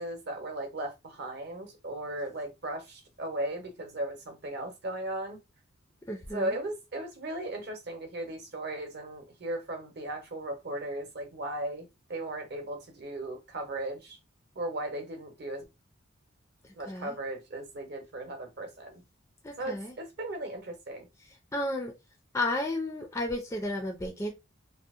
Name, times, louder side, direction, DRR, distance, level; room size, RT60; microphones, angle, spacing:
voice 1, 0.0-5.4 6.3-14.2 14.6-15.6 16.8-19.0 19.6-21.1, right 1 dB, 55° right, 0.8 m, -37 dB
voice 2, 6.1-6.5 16.6-17.1 19.4-19.9 21.5-21.9 22.3-24.3, left 1 dB, 15° left, 0.3 m, -33 dB
2.7 x 2.0 x 2.4 m
head